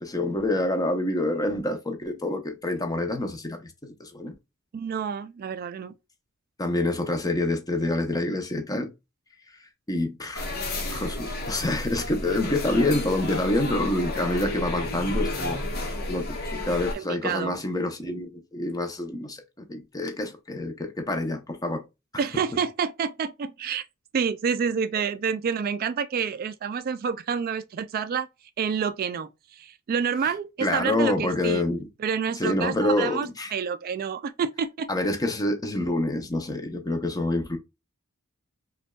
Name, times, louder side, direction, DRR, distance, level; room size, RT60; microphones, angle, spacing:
voice 1, 0.0-4.3 6.6-8.9 9.9-10.5 10.9-21.8 30.6-31.9 32.3-33.5 34.9-37.6, left 1 dB, 15° left, 0.7 m, -27 dB
voice 2, 4.7-5.9 13.7-13.8 16.9-17.6 22.2-23.8 24.1-28.3 28.6-31.6 32.0-34.9, right 6 dB, 45° right, 0.3 m, -28 dB
sound 1, 10.3-16.9, left 1 dB, 50° left, 1.2 m, -31 dB
5.1 x 2.3 x 2.2 m
head